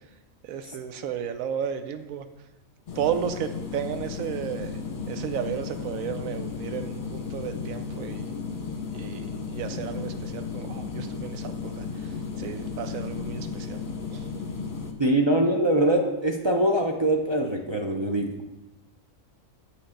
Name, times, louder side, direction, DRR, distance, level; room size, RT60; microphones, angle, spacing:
voice 1, 0.4-2.3 2.9-4.7 5.1-8.3 8.9-13.8 14.1-14.3, right 8 dB, 80° right, 8 dB, 1.0 m, -33 dB
sound 1, 2.9-14.9, left 5 dB, 45° left, 0.8 m, -34 dB
voice 2, 15.0-18.3, right 1 dB, 40° right, 1 dB, 0.4 m, -23 dB
8.4 x 3.3 x 6.3 m, 1.0 s
omnidirectional pair, 1.4 m